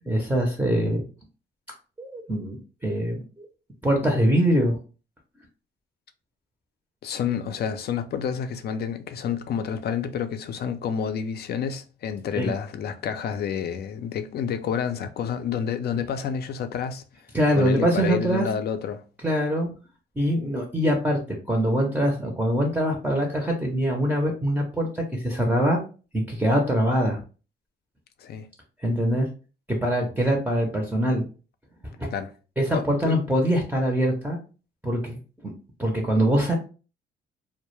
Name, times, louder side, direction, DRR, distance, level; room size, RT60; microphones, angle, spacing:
voice 1, 0.1-1.0 2.0-3.5 3.8-4.8 12.4-12.5 17.3-18.5 19.2-19.7 20.2-21.2 21.5-25.8 26.1-27.2 28.8-29.3 29.7-31.3 32.0-32.1 32.6-34.4 34.8-35.2 35.4-35.5 35.8-36.6, equal, 10° right, 0.5 m, -23 dB
voice 2, 7.0-17.0 17.6-19.0 28.2-28.5 32.1-32.3 32.7-33.2, left 7 dB, 55° left, 0.4 m, -29 dB
2.2 x 2.1 x 3.0 m
cardioid pair, 90°, 20 cm